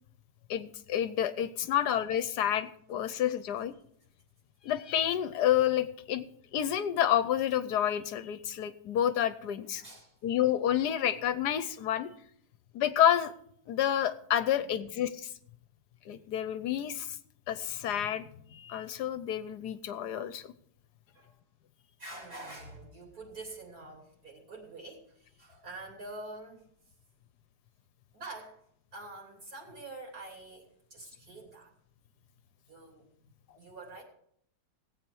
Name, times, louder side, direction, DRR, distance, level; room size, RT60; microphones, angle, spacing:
voice 1, 0.5-3.7 4.6-6.2 6.5-9.8 10.2-12.1 12.7-13.3 13.7-15.3 16.1-17.2 17.5-20.5, left 10 dB, 70° left, 13 dB, 1.2 m, -29 dB
voice 2, 9.8-10.2 14.6-14.9 21.1-21.4 22.0-26.7 28.1-28.6 28.9-31.7 32.7-34.0, right 2 dB, 55° right, -1 dB, 3.6 m, -46 dB
17.5 x 8.4 x 4.6 m, 0.67 s
omnidirectional pair, 2.0 m